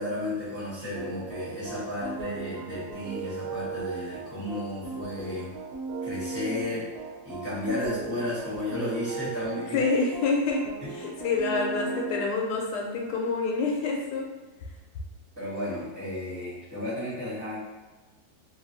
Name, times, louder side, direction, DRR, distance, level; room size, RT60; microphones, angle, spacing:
voice 1, 0.0-5.5 6.0-6.9 7.2-9.8 15.4-17.6, left 1 dB, 10° right, -13 dB, 1.3 m, -33 dB
sound 1, 0.9-12.2, right 4 dB, 70° right, 1.1 m, -37 dB
voice 2, 9.7-10.6 10.9-14.3, left 4 dB, 85° left, 0 dB, 1.2 m, -27 dB
3.1 x 2.4 x 2.6 m, 1.2 s
omnidirectional pair, 1.7 m